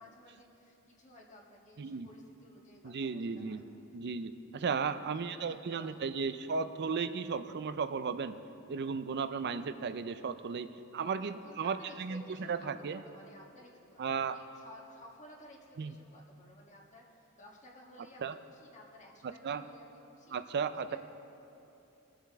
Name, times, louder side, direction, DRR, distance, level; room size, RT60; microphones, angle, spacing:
voice 1, 0.0-3.6 4.6-5.1 5.5-6.0 11.4-20.4 20.9-21.0, left 1 dB, 35° left, -2 dB, 1.5 m, -55 dB
voice 2, 2.8-3.6 3.9-8.4 8.7-10.7 10.9-12.2 12.5-13.0 14.0-14.4 15.8-16.0 18.2-18.4 19.2-19.6 20.3-21.0, right 5 dB, 50° right, 11 dB, 0.4 m, -35 dB
21.0 x 7.5 x 3.6 m, 2.9 s
head